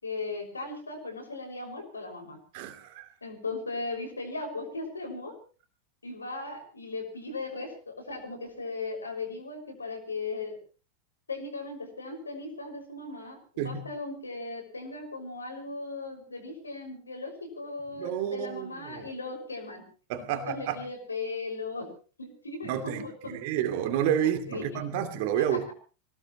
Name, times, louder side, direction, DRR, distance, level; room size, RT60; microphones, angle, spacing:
voice 1, 0.0-2.4 3.2-5.4 6.0-10.6 11.3-19.8 20.3-21.9 22.2-23.4 24.5-24.8 25.5-25.7, left 3 dB, 75° left, 5.9 m, -37 dB
voice 2, 2.5-3.1 13.6-13.8 18.0-19.1 20.1-20.8 22.6-25.7, right 10 dB, 50° right, 2.4 m, -30 dB
25.0 x 18.5 x 3.1 m
figure-of-eight pair, 90°, 0 cm